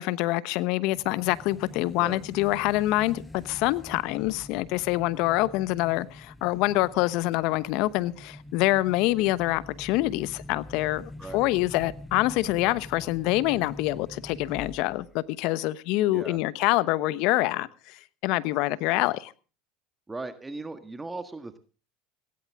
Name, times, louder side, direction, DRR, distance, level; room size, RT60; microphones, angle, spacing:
voice 1, 0.0-19.3, left 18 dB, 65° left, 17 dB, 1.0 m, -26 dB
sound 1, 0.9-15.2, left 1 dB, 10° left, 1.1 m, -45 dB
voice 2, 20.1-21.6, right 3 dB, 15° right, 9 dB, 1.6 m, -38 dB
18.5 x 16.5 x 3.6 m, 0.35 s
hypercardioid pair, 90°, 0 cm